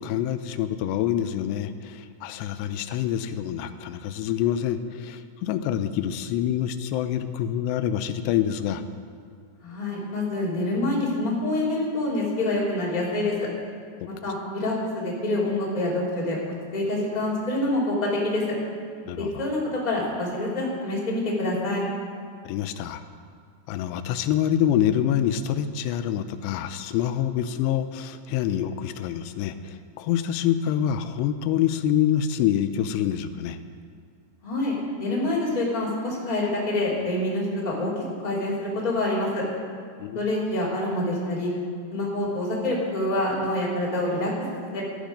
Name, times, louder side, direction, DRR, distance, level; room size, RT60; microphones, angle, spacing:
voice 1, 0.0-8.8 19.1-19.4 22.4-23.0 23.7-33.6 40.0-40.2, left 10 dB, 85° left, 10 dB, 2.8 m, -26 dB
voice 2, 9.6-13.3 14.2-16.4 16.7-18.5 19.2-21.8 34.4-37.9 38.2-39.4 40.1-41.5 41.9-44.8, left 1 dB, 10° left, -6 dB, 2.2 m, -26 dB
16.0 x 11.5 x 5.1 m, 2.1 s
omnidirectional pair, 4.8 m